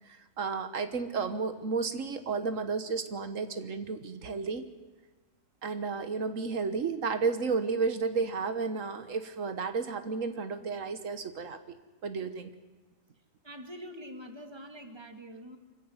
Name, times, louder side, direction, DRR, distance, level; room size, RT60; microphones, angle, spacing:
voice 1, 0.1-4.6 5.6-11.8 12.0-12.5, right 4 dB, 80° right, 9 dB, 1.6 m, -32 dB
voice 2, 13.4-15.6, equal, 20° right, 5 dB, 2.2 m, -45 dB
25.5 x 15.5 x 9.5 m, 1.2 s
omnidirectional pair, 1.3 m